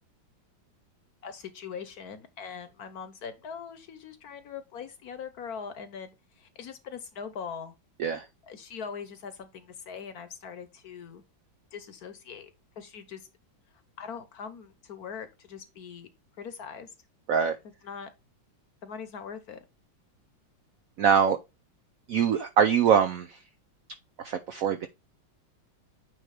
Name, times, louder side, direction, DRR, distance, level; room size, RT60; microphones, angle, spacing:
voice 1, 1.2-7.7 8.4-11.2 11.7-12.5 12.8-13.3 14.0-16.1 16.4-16.9 17.6-18.1 18.8-19.6, left 6 dB, 60° left, 1.3 m, -41 dB
voice 2, 21.0-21.4 22.1-23.4 24.2-24.9, right 7 dB, 70° right, 0.8 m, -23 dB
9.2 x 3.1 x 4.8 m
omnidirectional pair, 2.1 m